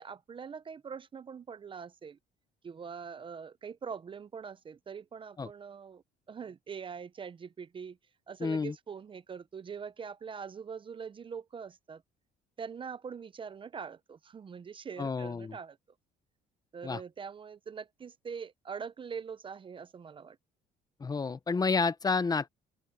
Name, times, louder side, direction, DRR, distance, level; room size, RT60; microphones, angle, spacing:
voice 1, 0.0-2.2 2.6-8.0 8.3-12.0 12.6-15.8 16.7-20.4, right 6 dB, 30° right, 0.6 m, -43 dB
voice 2, 8.4-8.7 15.0-15.6 16.8-17.0 21.0-22.5, left 4 dB, 25° left, 0.8 m, -30 dB
open air
cardioid pair, 110°, 17 cm